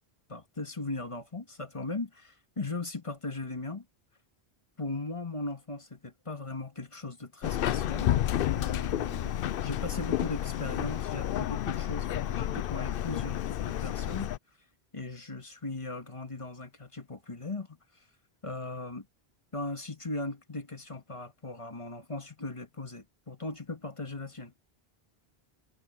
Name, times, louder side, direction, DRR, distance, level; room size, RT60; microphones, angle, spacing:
voice 1, 0.3-3.9 4.8-8.1 8.5-14.3 14.9-17.7 18.4-19.1 19.5-24.5, left 2 dB, 30° left, 2.0 m, -38 dB
Subway metro underground, 7.4-14.4, left 11 dB, 65° left, 0.7 m, -30 dB
omnidirectional pair, 1.0 m